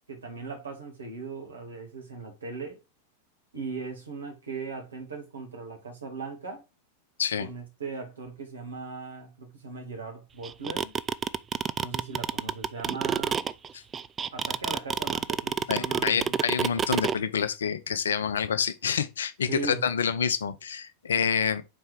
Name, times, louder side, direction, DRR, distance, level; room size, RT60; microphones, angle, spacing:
voice 1, 0.1-2.8 3.5-6.6 7.4-11.0 11.8-13.4 14.3-16.3 19.5-19.8, right 4 dB, 70° right, 2.1 m, -38 dB
sound 1, 10.4-17.2, right 7 dB, 20° right, 0.3 m, -27 dB
voice 2, 15.7-21.6, left 7 dB, 65° left, 0.6 m, -27 dB
4.6 x 4.2 x 5.1 m
figure-of-eight pair, 90°, 0 cm